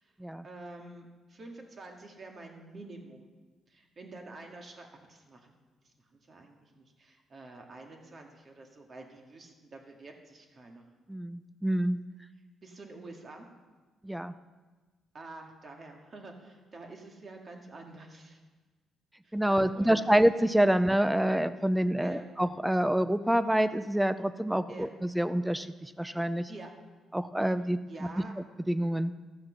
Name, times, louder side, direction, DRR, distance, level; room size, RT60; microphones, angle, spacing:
voice 1, 0.4-3.3 3.7-5.5 6.3-10.9 12.6-13.5 15.1-18.4 19.2-20.1 22.0-22.2 24.7-24.9 26.5-26.7 27.9-28.3, right 2 dB, 40° right, 2 dB, 2.1 m, -48 dB
voice 2, 11.1-12.0 14.0-14.3 19.3-26.5 27.1-28.1 28.7-29.1, right 1 dB, 5° right, 13 dB, 0.6 m, -27 dB
14.0 x 7.2 x 6.4 m, 1.3 s
cardioid pair, 90°, 0 cm